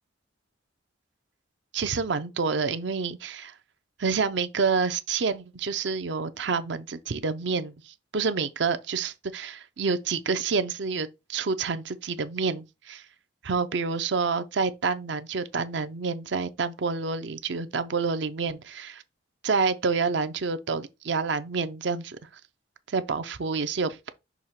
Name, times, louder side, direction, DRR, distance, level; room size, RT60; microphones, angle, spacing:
voice 1, 1.7-3.5 4.0-13.0 13.4-19.0 19.4-22.2 22.9-24.1, right 4 dB, 60° right, 0.5 m, -28 dB
6.0 x 2.8 x 5.6 m
head